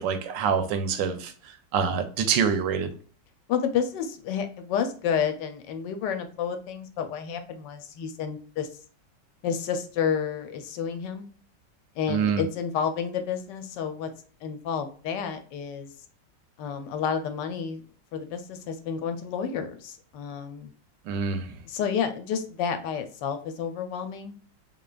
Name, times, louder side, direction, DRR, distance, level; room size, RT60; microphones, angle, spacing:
voice 1, 0.0-1.3 1.7-2.9 12.1-12.4 21.1-21.5, right 6 dB, 85° right, 1.3 m, -25 dB
voice 2, 3.5-8.7 9.4-11.3 12.0-14.1 14.4-15.9 16.6-17.8 18.1-20.7 21.7-24.3, left 7 dB, 75° left, 1.2 m, -30 dB
3.8 x 3.4 x 2.3 m
omnidirectional pair, 2.0 m